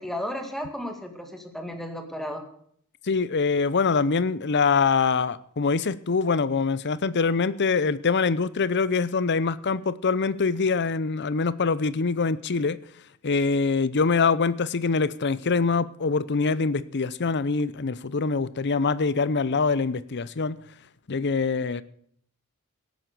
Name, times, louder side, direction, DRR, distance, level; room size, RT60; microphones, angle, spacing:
voice 1, 0.0-2.5, equal, ahead, 2.0 m, -34 dB
voice 2, 3.0-12.8 13.2-20.6 21.1-21.8, left 4 dB, 50° left, 0.7 m, -24 dB
16.5 x 9.2 x 6.8 m
head